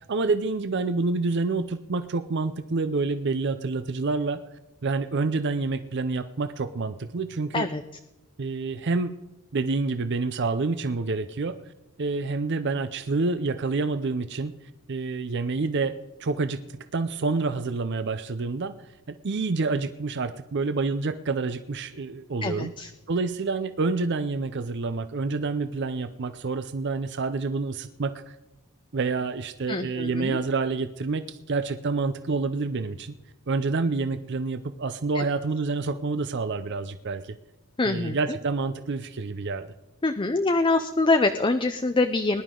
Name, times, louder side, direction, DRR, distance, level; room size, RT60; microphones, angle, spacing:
voice 1, 0.1-4.4 4.8-7.7 8.4-9.1 9.5-11.6 12.0-14.5 14.9-15.9 16.2-16.6 16.9-18.7 19.1-22.7 23.1-28.4 28.9-33.1 33.5-37.4 37.8-39.7, right 3 dB, 50° right, 11 dB, 0.6 m, -28 dB
voice 2, 22.4-22.9 29.7-30.4 35.1-35.2 37.8-38.1 40.0-42.4, left 3 dB, 20° left, 8 dB, 0.5 m, -24 dB
20.0 x 11.0 x 3.8 m, 1.0 s
head